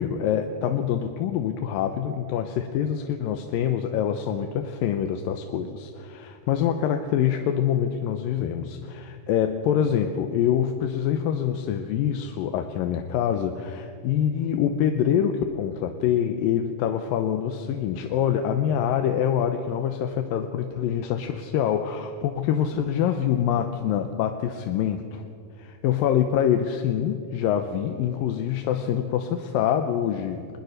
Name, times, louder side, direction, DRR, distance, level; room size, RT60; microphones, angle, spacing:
voice 1, 0.0-25.2 25.6-30.5, left 9 dB, 80° left, 6 dB, 2.5 m, -25 dB
22.0 x 21.0 x 6.5 m, 2.5 s
omnidirectional pair, 4.1 m